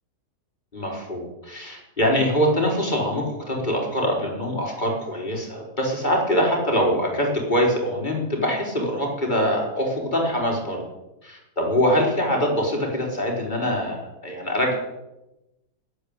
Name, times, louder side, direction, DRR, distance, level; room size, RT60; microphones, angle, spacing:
voice 1, 0.7-10.8 11.2-14.7, equal, 25° left, -1 dB, 4.5 m, -24 dB
12.5 x 12.0 x 8.6 m, 0.96 s
omnidirectional pair, 1.9 m